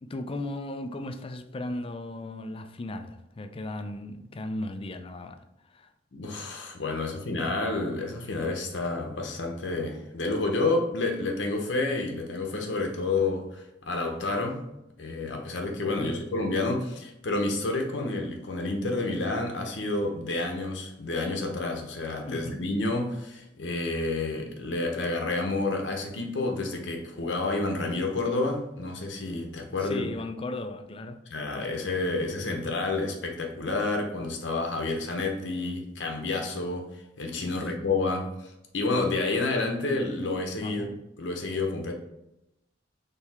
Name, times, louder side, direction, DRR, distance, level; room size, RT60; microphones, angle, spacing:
voice 1, 0.0-5.9 16.0-16.1 22.2-22.6 29.8-31.2 37.4-37.9 40.6-41.0, left 2 dB, 30° left, 0.4 m, -36 dB
voice 2, 6.1-14.6 15.0-30.1 31.3-36.9 37.2-40.9 41.2-41.9, left 2 dB, 70° left, 0.8 m, -29 dB
4.5 x 3.4 x 3.4 m
head